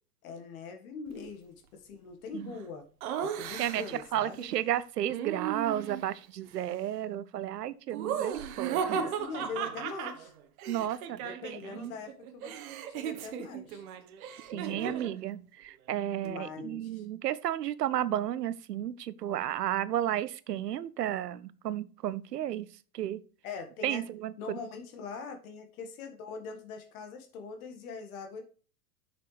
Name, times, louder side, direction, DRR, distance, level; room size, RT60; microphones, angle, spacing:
voice 1, 0.2-2.8 3.2-4.5 8.9-10.3 11.2-12.5 12.9-13.8 14.5-15.0 16.2-17.1 23.4-24.0 24.4-28.4, left 5 dB, 60° left, 1.6 m, -42 dB
Laughter, 3.0-4.0 5.1-6.1 7.9-11.8 12.1-15.2, right 8 dB, 60° right, 1.2 m, -36 dB
voice 2, 4.1-9.0 10.7-11.4 11.7-11.9 14.5-22.7 22.9-23.2 23.8-24.6, right 12 dB, 80° right, 0.7 m, -33 dB
7.0 x 6.0 x 3.2 m
hypercardioid pair, 95°, 48 cm